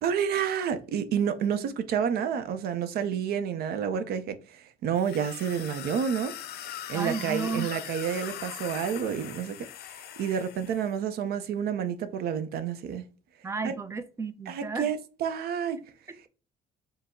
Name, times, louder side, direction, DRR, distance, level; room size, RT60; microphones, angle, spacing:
voice 1, 0.0-6.4 6.9-9.7 9.9-13.0 13.6-13.7 14.5-15.8, right 8 dB, 70° right, 0.6 m, -29 dB
sound 1, 5.0-10.9, left 11 dB, 70° left, 0.5 m, -41 dB
voice 2, 6.9-7.7 13.4-14.9, right 4 dB, 15° right, 0.4 m, -33 dB
4.5 x 2.0 x 3.5 m
cardioid pair, 110°, 17 cm